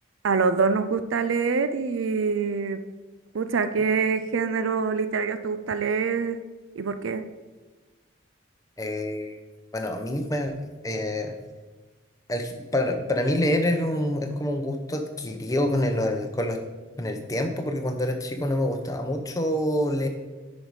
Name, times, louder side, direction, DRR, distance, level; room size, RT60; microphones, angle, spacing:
voice 1, 0.2-2.8 3.3-6.4 6.8-7.3, right 5 dB, 80° right, 11 dB, 0.5 m, -25 dB
voice 2, 8.8-9.4 9.7-10.6 10.8-11.3 12.3-16.6 17.0-20.1, left 1 dB, 15° left, 4 dB, 0.7 m, -26 dB
9.5 x 5.2 x 4.8 m, 1.3 s
head